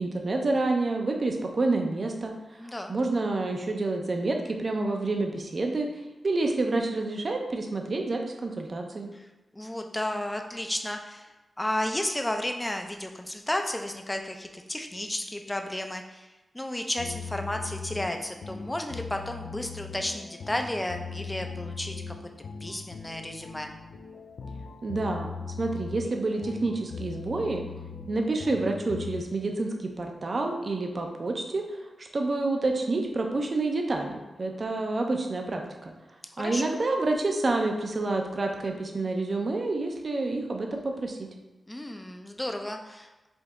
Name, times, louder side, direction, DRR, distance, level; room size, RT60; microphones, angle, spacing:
voice 1, 0.0-2.3 2.9-5.9 6.2-9.1 24.8-25.3 25.6-27.6 28.1-31.6 32.0-35.9 36.4-41.3, right 2 dB, 45° right, 2 dB, 0.6 m, -28 dB
voice 2, 2.6-2.9 9.1-9.2 9.5-11.3 11.6-16.3 16.5-22.1 22.6-23.7 36.4-36.7 41.7-43.3, left 1 dB, 10° left, 4 dB, 0.5 m, -33 dB
sound 1, 17.0-29.2, left 5 dB, 75° left, 0.3 m, -40 dB
5.1 x 2.8 x 3.6 m, 1.1 s
wide cardioid pair, 110°, 0 cm